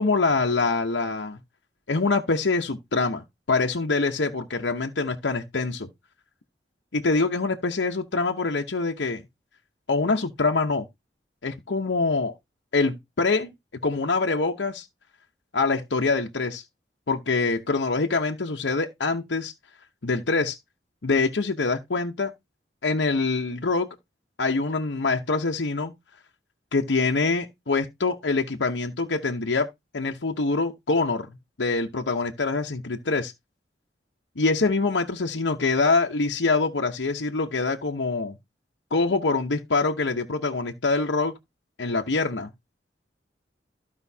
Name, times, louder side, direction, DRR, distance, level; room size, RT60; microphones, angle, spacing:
voice 1, 0.0-1.4 1.9-5.9 6.9-9.2 9.9-10.9 11.4-12.3 12.7-13.5 13.8-14.9 15.5-16.6 17.1-19.5 20.0-20.6 21.0-22.3 22.8-23.9 24.4-25.9 26.7-29.7 29.9-31.3 31.6-33.3 34.4-38.4 38.9-41.3 41.8-42.5, left 3 dB, 80° left, 0.9 m, -25 dB
14.5 x 5.2 x 2.8 m
head